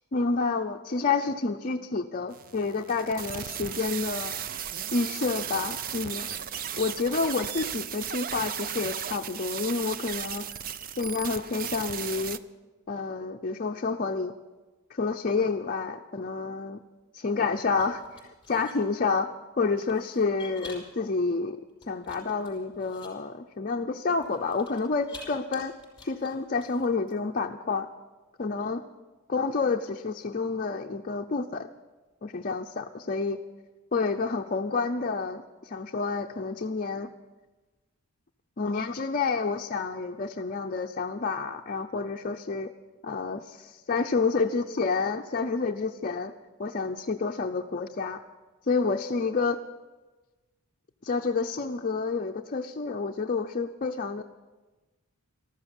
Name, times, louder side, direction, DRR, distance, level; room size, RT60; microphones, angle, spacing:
voice 1, 0.1-4.4 4.9-6.3 6.8-10.5 11.0-12.4 12.9-14.3 14.9-16.8 17.1-19.3 19.6-21.6 21.9-25.7 26.0-27.9 28.4-28.8 29.3-31.7 32.2-33.4 33.9-37.1 38.6-42.7 43.0-46.3 46.6-48.2 48.7-49.6 51.0-54.2, left 4 dB, 40° left, 3 dB, 0.6 m, -29 dB
sound 1, 2.3-12.4, right 9 dB, 40° right, 0.5 m, -35 dB
sound 2, 17.7-18.7 19.8-21.0 21.7-23.1 24.2-25.3 25.5-27.2, left 3 dB, 20° left, 5.5 m, -49 dB
13.5 x 13.0 x 7.1 m, 1.2 s
head